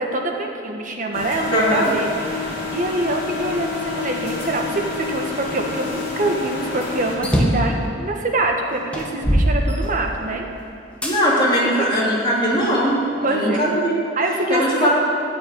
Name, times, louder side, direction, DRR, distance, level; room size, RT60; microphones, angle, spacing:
voice 1, 0.0-10.4 11.5-11.9 13.2-13.7 14.1-14.9, right 2 dB, 45° right, 1 dB, 1.5 m, -24 dB
sound 1, 1.1-7.2, left 4 dB, 55° left, 2.9 m, -29 dB
voice 2, 1.5-1.9 11.0-13.0 13.3-14.0 14.5-14.9, equal, 25° left, -6 dB, 3.0 m, -19 dB
sound 2, 7.2-7.7 8.4-8.5 8.9-10.3 11.0-11.2 11.9-12.9, equal, 5° left, 1.9 m, -21 dB
14.5 x 6.2 x 9.4 m, 2.6 s
head